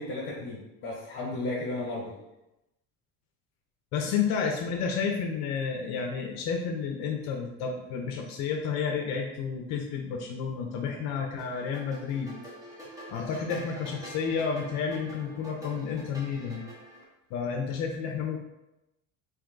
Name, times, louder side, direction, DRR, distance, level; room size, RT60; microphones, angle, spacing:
voice 1, 0.0-2.1, left 2 dB, 45° left, -3 dB, 1.0 m, -34 dB
voice 2, 3.9-12.3 13.1-16.6 17.3-18.4, left 6 dB, 60° left, 2 dB, 0.5 m, -31 dB
sound 1, 11.4-17.0, right 1 dB, 10° right, 0.7 m, -45 dB
3.4 x 2.7 x 3.8 m, 0.93 s
cardioid pair, 160°, 31 cm